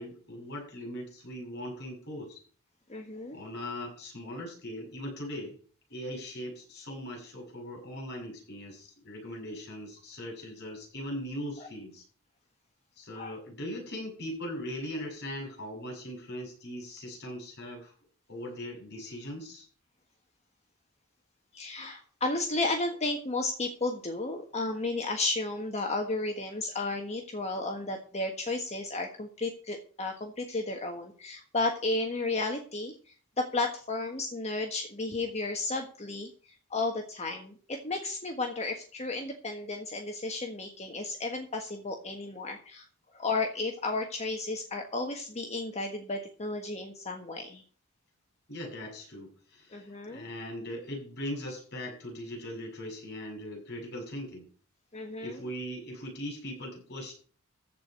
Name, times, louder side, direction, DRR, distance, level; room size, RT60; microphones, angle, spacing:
voice 1, 0.0-2.4 3.3-5.6 5.9-12.0 13.0-17.9 18.3-19.7 48.5-54.5 55.2-57.1, equal, 50° left, 0 dB, 6.8 m, -40 dB
voice 2, 2.9-3.4 13.1-13.3 21.5-32.9 33.4-36.3 36.7-42.9 43.1-47.6 49.7-50.3 54.9-55.4, left 2 dB, 30° left, 2 dB, 1.5 m, -33 dB
14.5 x 4.9 x 7.7 m, 0.41 s
head